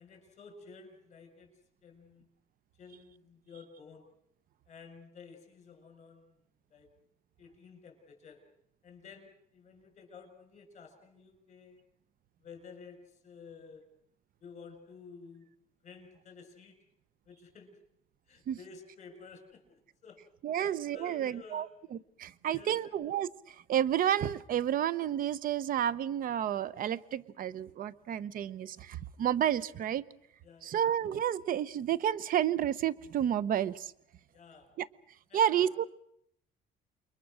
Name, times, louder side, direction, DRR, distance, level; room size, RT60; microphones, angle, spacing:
voice 1, 0.0-1.5 1.8-2.3 2.8-4.1 4.7-6.3 6.7-6.9 7.4-8.4 8.8-11.8 12.4-13.8 14.4-15.5 15.8-16.8 17.2-17.8 18.3-20.3 20.5-21.7 22.5-22.9 30.4-30.8 34.3-34.7 35.3-35.7, left 5 dB, 45° left, 5 dB, 6.3 m, -52 dB
voice 2, 20.4-21.7 21.9-30.0 30.6-33.9 34.8-34.9 35.3-35.9, right 10 dB, 55° right, 19 dB, 0.9 m, -31 dB
29.0 x 22.5 x 6.4 m, 0.71 s
cardioid pair, 110°, 17 cm